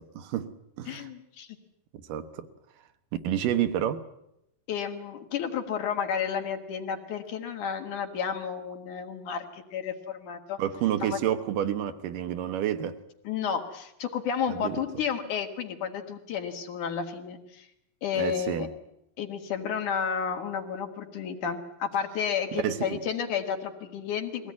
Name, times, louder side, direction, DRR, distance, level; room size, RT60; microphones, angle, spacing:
voice 1, 0.1-1.1 2.1-2.5 3.2-4.0 10.6-13.0 14.5-14.8 18.2-18.7 22.5-23.0, right 10 dB, 75° right, 2.7 m, -29 dB
voice 2, 0.9-1.5 4.7-10.6 11.0-11.2 13.2-17.7 18.0-18.7 19.2-24.5, left 7 dB, 65° left, 3.3 m, -32 dB
22.5 x 17.5 x 9.6 m
omnidirectional pair, 3.9 m